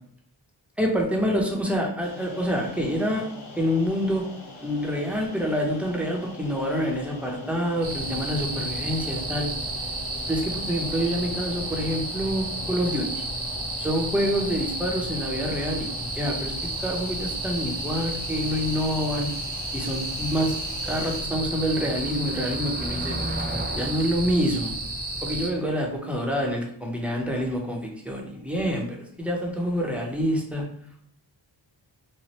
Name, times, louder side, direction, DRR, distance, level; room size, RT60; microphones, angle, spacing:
voice 1, 0.8-3.2 3.5-4.2 4.6-9.5 10.3-13.2 13.8-16.5 16.8-19.3 19.7-20.6 20.8-23.2 23.7-24.8 25.2-28.9 29.2-30.6, equal, 5° right, -1 dB, 0.8 m, -27 dB
sound 1, 2.0-21.2, left 3 dB, 85° left, 0.8 m, -43 dB
sound 2, 7.8-25.5, right 2 dB, 55° right, 1.1 m, -32 dB
Motor vehicle (road), 15.6-25.9, right 1 dB, 25° right, 0.4 m, -40 dB
3.1 x 2.2 x 2.9 m, 0.64 s
cardioid pair, 45°, 47 cm